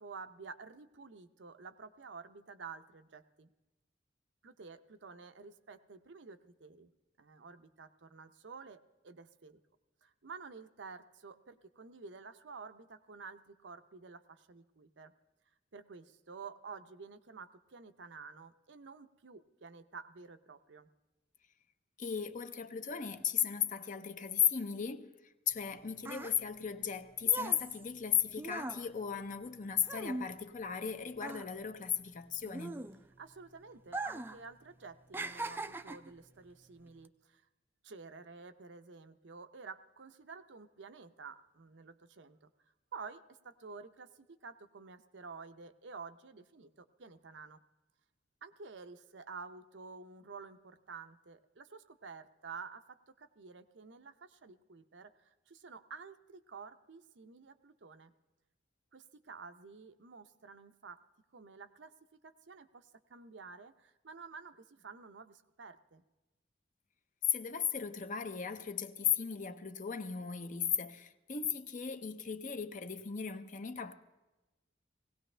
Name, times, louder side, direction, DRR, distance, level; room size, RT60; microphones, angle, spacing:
voice 1, 0.0-3.5 4.4-6.9 7.2-9.6 10.0-15.1 15.7-20.9 33.2-37.4 37.8-42.5 42.9-47.6 48.4-58.1 58.9-61.0 61.3-61.9 62.2-66.0, right 5 dB, 80° right, 0.7 m, -51 dB
voice 2, 22.0-25.1 25.5-32.8 67.3-73.9, left 8 dB, 45° left, 0.7 m, -35 dB
sound 1, 25.5-30.9 31.2-33.3 33.8-34.4 34.7-36.2 36.9-37.1, right 2 dB, 10° right, 0.4 m, -41 dB
19.0 x 17.0 x 3.3 m
head